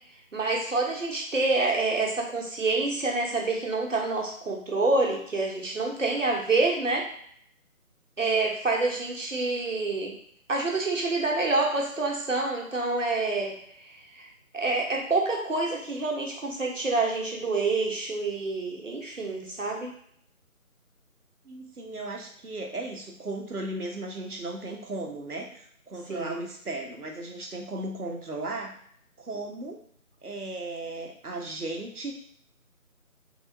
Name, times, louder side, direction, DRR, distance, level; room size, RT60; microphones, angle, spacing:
voice 1, 0.3-7.1 8.2-10.1 10.5-14.3 14.5-19.9 26.1-26.4, right 3 dB, 60° right, 0 dB, 1.0 m, -27 dB
voice 2, 21.4-28.7 29.2-29.8 30.2-32.1, right 2 dB, 85° right, 2 dB, 0.9 m, -36 dB
3.4 x 2.9 x 2.6 m, 0.64 s
figure-of-eight pair, 160°, 44 cm